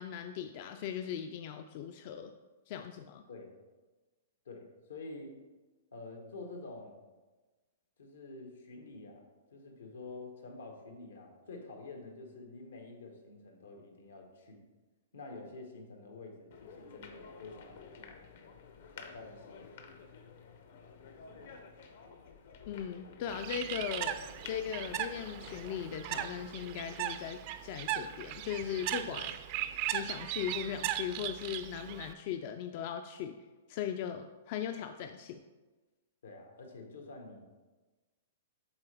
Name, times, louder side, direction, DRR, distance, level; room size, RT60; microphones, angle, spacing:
voice 1, 0.0-2.3 2.7-3.2 22.7-24.2 24.4-29.3 29.9-33.4 33.7-35.4, left 9 dB, 45° left, 7 dB, 0.3 m, -38 dB
voice 2, 4.4-5.4 5.9-7.0 8.0-14.6 15.1-18.1 18.9-19.6 21.3-21.4 36.2-37.5, left 3 dB, 85° left, 3 dB, 1.2 m, -48 dB
sound 1, 16.5-25.8, left 5 dB, 65° left, 0.7 m, -52 dB
Bird, 23.3-32.1, right 12 dB, 45° right, 0.4 m, -38 dB
7.0 x 4.1 x 3.4 m, 1.2 s
hypercardioid pair, 140°, 0 cm